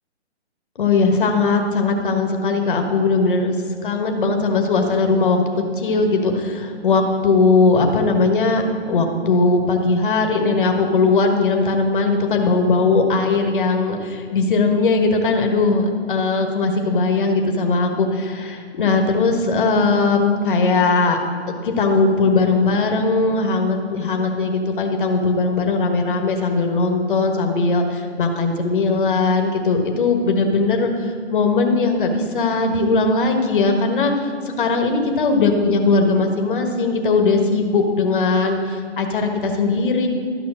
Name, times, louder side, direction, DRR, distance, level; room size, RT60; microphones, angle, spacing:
voice 1, 0.8-3.5 3.8-5.4 5.8-8.6 8.9-21.2 21.6-34.1 34.6-40.1, left 3 dB, 50° left, 4 dB, 1.3 m, -19 dB
12.5 x 5.6 x 6.2 m, 2.2 s
hypercardioid pair, 165°, 34 cm